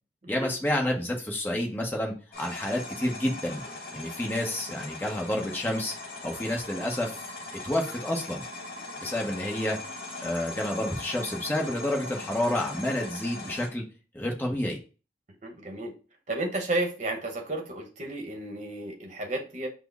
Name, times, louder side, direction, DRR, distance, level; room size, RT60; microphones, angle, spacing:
voice 1, 0.3-3.6 3.9-5.9 6.2-7.2 7.6-8.4 9.0-9.8 10.2-13.8 14.1-14.8, left 1 dB, 10° left, 0 dB, 0.7 m, -29 dB
sound 1, 2.3-13.7, left 2 dB, 50° left, 1.0 m, -40 dB
voice 2, 15.4-15.9 16.3-19.7, right 2 dB, 40° right, 3 dB, 0.9 m, -32 dB
5.8 x 2.0 x 3.4 m, 0.35 s
head